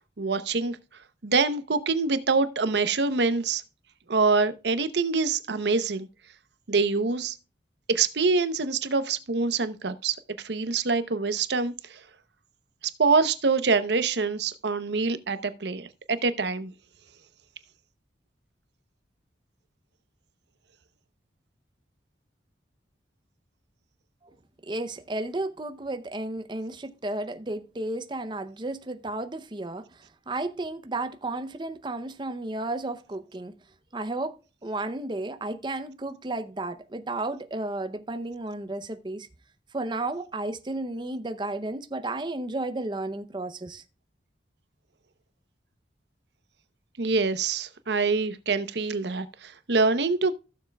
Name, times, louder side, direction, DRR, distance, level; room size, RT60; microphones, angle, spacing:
voice 1, 0.2-0.8 1.2-3.6 4.1-6.1 6.7-7.4 7.9-12.0 13.0-16.7 47.0-50.4, right 4 dB, 65° right, 0.8 m, -25 dB
voice 2, 24.6-33.5 33.9-34.4 34.6-39.3 39.7-43.8, right 2 dB, 25° right, 0.6 m, -33 dB
15.5 x 6.9 x 2.3 m
head